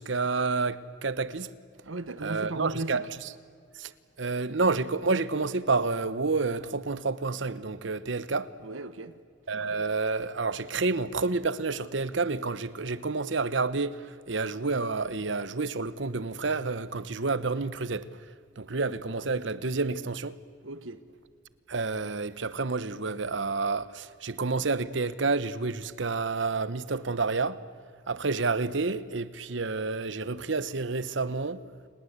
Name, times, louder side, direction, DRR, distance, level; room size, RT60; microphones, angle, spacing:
voice 1, 0.0-1.5 2.2-3.1 3.8-3.9 4.2-8.5 9.5-14.0 14.3-18.1 18.6-20.4 21.7-27.6 28.1-31.6, right 3 dB, 70° right, 1.0 m, -29 dB
voice 2, 1.8-3.0 8.6-9.2 20.6-21.0, right 2 dB, 85° right, 1.3 m, -36 dB
29.5 x 20.0 x 8.1 m
head